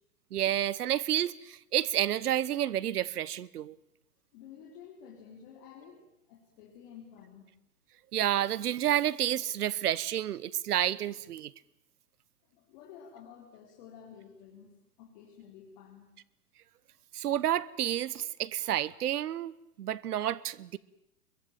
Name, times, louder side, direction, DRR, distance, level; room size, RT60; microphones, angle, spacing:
voice 1, 0.3-3.8 8.1-11.5 17.1-20.8, right 11 dB, 75° right, 1.1 m, -30 dB
voice 2, 4.3-6.0 6.3-7.5 12.5-16.1, left 8 dB, 35° left, 4.7 m, -51 dB
24.0 x 23.0 x 9.2 m
hypercardioid pair, 160°, 46 cm